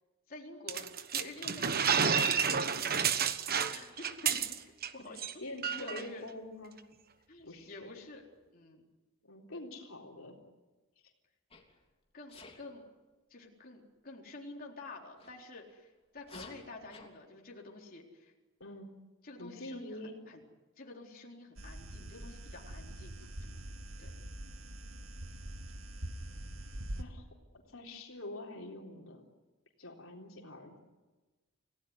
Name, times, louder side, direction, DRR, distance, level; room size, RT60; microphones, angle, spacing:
voice 1, 0.3-4.2 4.9-5.3 5.7-6.3 7.3-8.3 8.5-8.8 12.1-12.8 13.3-18.3 19.2-20.4 20.8-23.1 23.4-23.6 24.0-24.1, left 2 dB, 45° left, -1 dB, 4.0 m, -49 dB
sound 1, 0.7-4.9 5.2-5.3 5.6-6.0, right 7 dB, 45° right, 1.2 m, -30 dB
voice 2, 5.1-6.8 7.4-7.9 9.2-10.4 18.6-18.9 19.4-20.2 27.0-27.2 27.7-29.2 29.8-30.8, left 1 dB, 75° left, 0 dB, 3.8 m, -46 dB
Sneeze, 11.5-11.8 12.3-12.6 15.2-15.3 16.2-17.1, left 3 dB, 30° left, 3.3 m, -51 dB
sound 2, 21.6-27.0, right 1 dB, 75° right, 2.1 m, -44 dB
29.0 x 17.5 x 9.7 m, 1.2 s
head